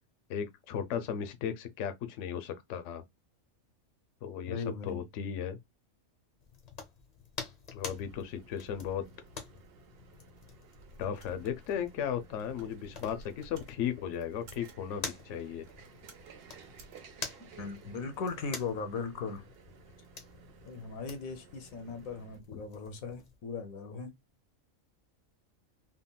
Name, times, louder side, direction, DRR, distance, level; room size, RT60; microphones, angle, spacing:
voice 1, 0.3-3.0 4.2-5.6 7.7-9.0 11.0-15.7 22.5-22.6, left 8 dB, 70° left, 0.9 m, -36 dB
voice 2, 4.5-5.0 17.6-19.4 20.6-24.1, left 4 dB, 90° left, 1.2 m, -38 dB
sound 1, 6.4-23.4, left 4 dB, 40° left, 0.6 m, -48 dB
sound 2, 7.8-22.4, right 7 dB, 55° right, 0.7 m, -57 dB
sound 3, 10.6-13.7 14.3-14.9 15.6-16.3 16.7-17.0, right 3 dB, 70° right, 1.2 m, -55 dB
3.6 x 2.1 x 2.2 m
omnidirectional pair, 1.4 m